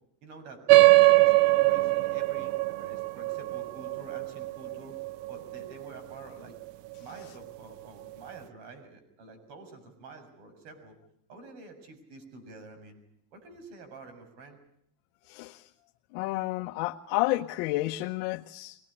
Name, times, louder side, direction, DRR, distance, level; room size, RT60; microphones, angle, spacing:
voice 1, 0.2-0.6 0.9-5.0 5.3-6.6 7.0-11.0 11.3-13.0 13.3-14.6, right 3 dB, 60° right, 6.9 m, -48 dB
sound 1, 0.7-5.6, right 20 dB, 90° right, 1.0 m, -22 dB
voice 2, 15.3-15.7 16.1-18.8, left 18 dB, 65° left, 1.1 m, -30 dB
24.0 x 19.5 x 9.9 m
cardioid pair, 165°, 47 cm